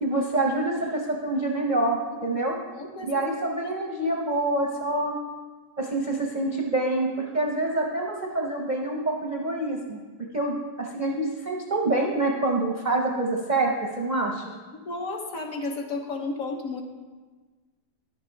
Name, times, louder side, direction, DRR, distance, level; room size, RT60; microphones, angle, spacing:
voice 1, 0.0-2.6 3.0-5.2 5.8-10.0 10.3-14.4, right 2 dB, 45° right, -1 dB, 0.6 m, -26 dB
voice 2, 2.7-3.3 14.8-16.8, left 3 dB, 60° left, 2 dB, 1.3 m, -32 dB
10.5 x 6.6 x 4.5 m, 1.4 s
omnidirectional pair, 1.8 m